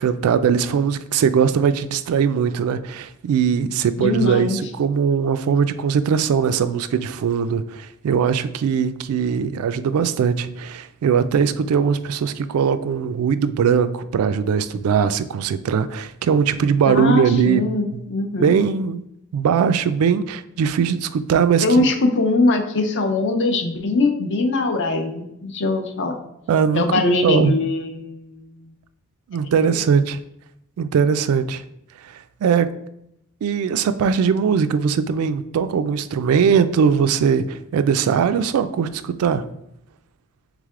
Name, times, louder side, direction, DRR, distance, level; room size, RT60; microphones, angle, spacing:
voice 1, 0.0-17.7 17.9-18.0 18.4-19.0 19.3-21.8 26.5-27.5 29.3-30.2 30.8-31.6 32.0-32.7 33.4-39.4, right 7 dB, 75° right, 13 dB, 0.3 m, -20 dB
voice 2, 4.0-4.6 16.9-18.5 21.6-26.2 26.7-28.7, left 2 dB, 55° left, 5 dB, 0.6 m, -21 dB
3.6 x 3.3 x 3.6 m, 0.76 s
head